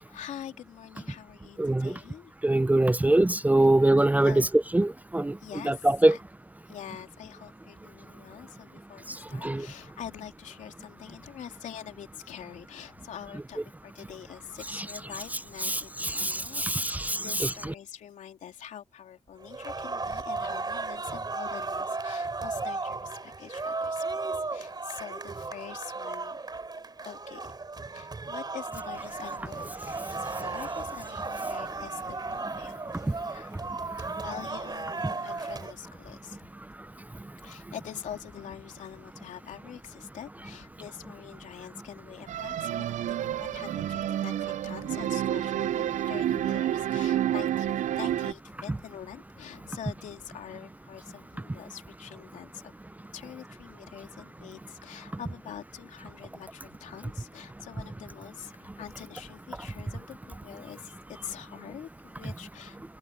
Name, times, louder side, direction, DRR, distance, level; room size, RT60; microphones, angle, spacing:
voice 1, 0.0-2.3 4.2-4.5 5.4-6.2 6.7-26.4 27.0-33.6 34.2-36.5 37.4-52.7 53.1-62.8, left 9 dB, 85° left, 3.4 m, -45 dB
voice 2, 1.6-1.9 2.4-4.3 4.7-5.3 5.7-6.1 9.4-9.7 16.1-17.2, right 1 dB, 10° right, 0.5 m, -23 dB
sound 1, 19.4-35.7, right 3 dB, 35° right, 3.1 m, -35 dB
sound 2, 42.3-48.3, right 11 dB, 80° right, 0.5 m, -29 dB
cardioid pair, 70°, 13 cm